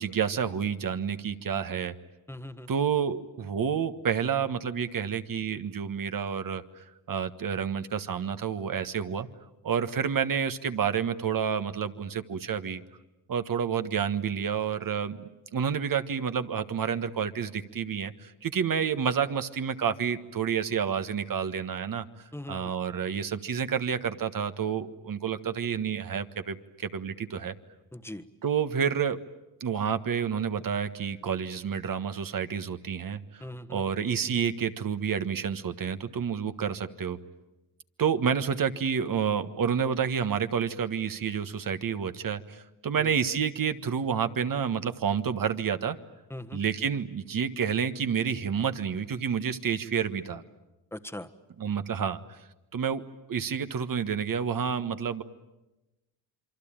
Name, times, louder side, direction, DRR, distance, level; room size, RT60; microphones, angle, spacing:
voice 1, 0.0-1.9 2.7-9.3 9.6-12.8 13.3-22.0 22.5-27.5 28.4-29.2 29.6-33.4 33.7-37.2 38.0-46.0 46.5-50.4 51.6-52.4 52.7-53.0 53.3-55.2, right 7 dB, 45° right, 10 dB, 1.5 m, -29 dB
voice 2, 2.3-2.7 22.3-22.7 27.9-28.2 33.4-33.8 43.0-43.1 46.3-46.6 50.9-51.3, left 1 dB, 5° left, 7 dB, 1.5 m, -40 dB
27.0 x 24.0 x 8.9 m, 1.0 s
supercardioid pair, 70°, 45 cm